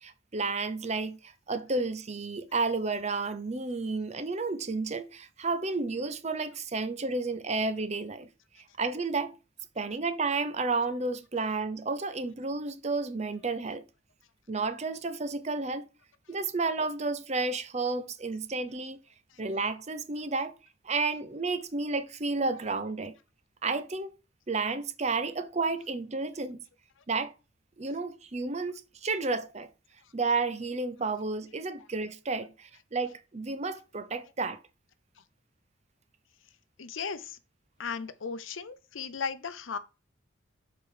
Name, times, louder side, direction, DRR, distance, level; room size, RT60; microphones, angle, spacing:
voice 1, 0.0-8.3 8.8-9.3 9.8-13.8 14.5-15.9 16.3-19.0 19.4-20.5 20.8-23.1 23.6-24.1 24.5-26.6 27.1-27.3 27.8-29.7 30.1-34.6, right 3 dB, 35° right, 0.7 m, -31 dB
voice 2, 36.8-37.4 37.8-39.8, left 5 dB, 80° left, 0.7 m, -36 dB
7.0 x 4.6 x 4.9 m
head